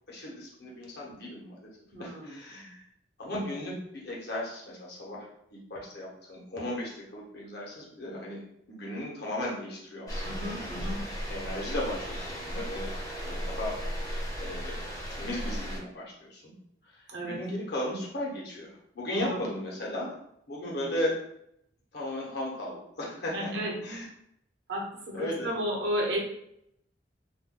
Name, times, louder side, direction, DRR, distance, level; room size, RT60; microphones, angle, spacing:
voice 1, 0.1-1.7 2.0-2.8 3.2-10.2 10.5-10.9 11.3-12.9 13.2-16.5 16.9-20.2 20.5-21.2 21.9-23.5 23.8-24.1 25.1-25.5, left 1 dB, 65° left, -3 dB, 1.0 m, -36 dB
voice 2, 1.9-2.3 10.2-11.0 17.1-17.4 19.1-19.4 23.3-23.7 24.7-26.2, equal, 65° right, -1 dB, 0.8 m, -33 dB
sound 1, 10.1-15.8, equal, 20° left, 0.7 m, -35 dB
2.6 x 2.2 x 3.7 m, 0.75 s
head